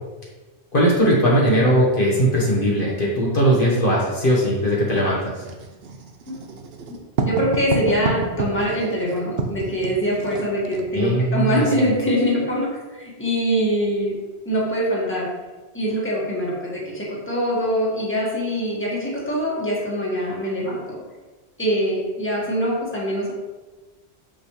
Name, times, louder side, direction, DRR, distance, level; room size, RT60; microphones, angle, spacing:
voice 1, 0.7-5.3 10.9-11.6, equal, 50° left, -5 dB, 1.5 m, -19 dB
Writing, 5.0-10.9, right 4 dB, 65° right, 1.0 m, -29 dB
voice 2, 7.2-14.2 14.5-15.3 15.7-21.0 21.6-23.3, equal, 10° left, -5 dB, 1.7 m, -23 dB
6.4 x 6.2 x 3.2 m, 1.2 s
omnidirectional pair, 1.1 m